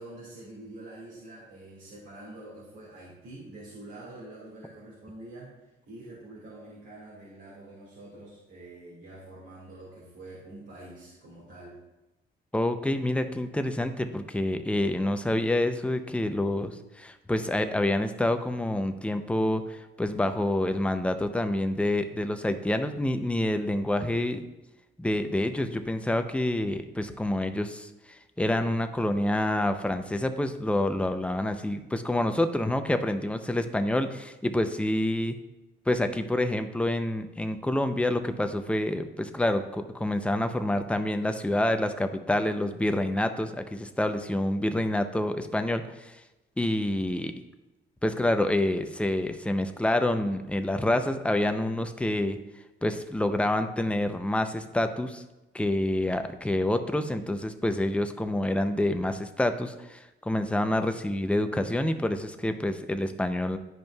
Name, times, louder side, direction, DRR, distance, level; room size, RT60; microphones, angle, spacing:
voice 1, 0.0-5.6 5.9-11.8, right 2 dB, 70° right, -7 dB, 2.0 m, -46 dB
voice 2, 12.5-24.4 25.0-35.4 35.9-46.2 46.6-47.3 48.0-52.4 52.8-55.2 55.5-63.6, left 1 dB, 5° left, 8 dB, 0.5 m, -27 dB
10.5 x 5.1 x 2.3 m, 1.0 s
cardioid pair, 90°, 20 cm